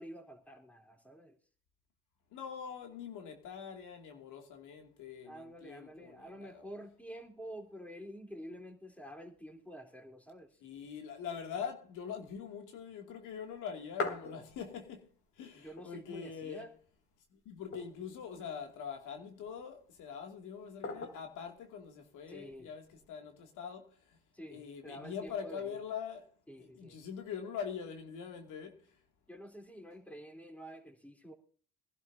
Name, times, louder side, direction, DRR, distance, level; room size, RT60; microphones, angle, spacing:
voice 1, 0.0-1.4 5.2-10.6 15.5-16.7 22.3-22.7 24.3-25.8 26.5-27.0 29.3-31.3, equal, 5° left, 3.4 m, -49 dB
voice 2, 2.3-6.7 10.6-15.0 15.4-16.7 17.3-23.9 24.5-26.3 26.6-28.8, left 7 dB, 90° left, 2.5 m, -43 dB
sound 1, 13.5-15.0 15.3-15.4 15.6-16.4 16.9-17.0 17.5-18.3 19.0-19.6 20.8-21.4 22.5-23.1, left 3 dB, 45° left, 3.5 m, -41 dB
22.5 x 12.0 x 2.7 m
cardioid pair, 90°, 30 cm